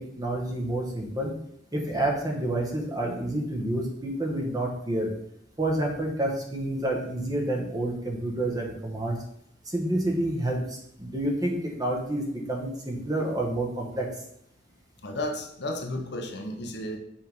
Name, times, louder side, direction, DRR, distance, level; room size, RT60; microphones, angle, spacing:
voice 1, 0.0-1.3 1.7-5.1 5.6-9.2 9.7-14.1, right 1 dB, 20° right, 0 dB, 1.1 m, -29 dB
voice 2, 15.0-17.0, left 1 dB, 65° left, 3 dB, 0.9 m, -33 dB
5.6 x 3.6 x 5.3 m, 0.73 s
head